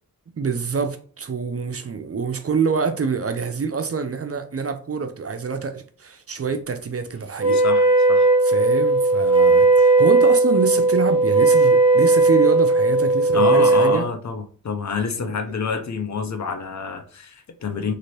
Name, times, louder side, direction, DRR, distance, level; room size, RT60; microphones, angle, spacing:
voice 1, 0.4-7.6 8.4-14.0 15.2-15.3, right 5 dB, 40° right, 0.4 m, -26 dB
Wind instrument woodwind instrument, 7.4-14.0, right 3 dB, 15° right, 1.0 m, -16 dB
voice 2, 7.5-8.3 13.3-17.9, left 5 dB, 50° left, 0.5 m, -27 dB
2.7 x 2.5 x 3.1 m
wide cardioid pair, 65°, 36 cm